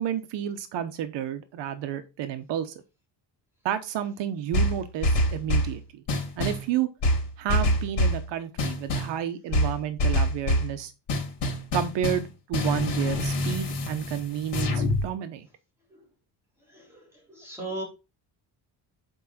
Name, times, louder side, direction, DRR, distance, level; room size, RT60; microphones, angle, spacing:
voice 1, 0.0-2.7 3.6-6.0 6.4-6.9 7.4-10.9 11.7-15.5, right 10 dB, 75° right, 1.0 m, -31 dB
sound 1, 4.5-5.7 6.1-6.7 7.0-8.2 8.6-9.2 9.5-10.7 11.1-15.0, left 1 dB, 75° left, 3.3 m, -25 dB
voice 2, 16.7-17.8, right 2 dB, 5° right, 3.3 m, -38 dB
8.3 x 4.8 x 4.2 m
cardioid pair, 170°, 43 cm